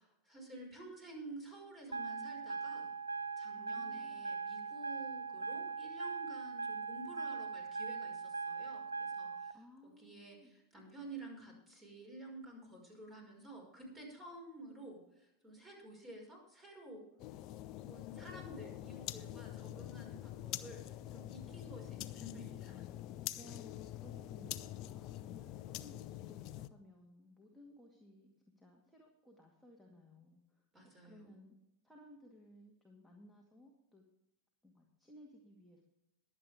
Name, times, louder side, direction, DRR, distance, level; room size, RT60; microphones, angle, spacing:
voice 1, 0.0-2.9 3.4-17.0 17.8-22.9 30.7-31.3, right 1 dB, 15° right, 1 dB, 5.5 m, -52 dB
sound 1, 1.9-9.5, right 5 dB, 80° right, 0.5 m, -40 dB
voice 2, 3.5-4.3 9.5-10.5 23.4-28.3 28.6-30.6 31.0-31.6 31.8-34.0 34.6-35.8, left 1 dB, ahead, 0 dB, 2.1 m, -59 dB
sound 2, 17.2-26.7, left 13 dB, 40° left, 0.6 m, -45 dB
22.0 x 8.3 x 3.6 m, 0.90 s
figure-of-eight pair, 90°, 0 cm